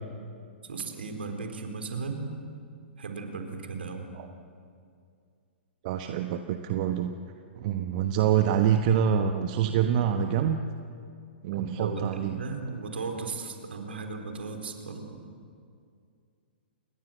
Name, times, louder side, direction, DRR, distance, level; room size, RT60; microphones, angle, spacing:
voice 1, 0.6-2.2 3.0-4.0 11.5-15.2, right 4 dB, 70° right, 5 dB, 4.4 m, -36 dB
voice 2, 5.8-7.1 7.5-10.6 11.4-12.4, right 9 dB, 45° right, 6 dB, 1.2 m, -26 dB
28.5 x 21.0 x 7.8 m, 2.3 s
figure-of-eight pair, 115°, 6 cm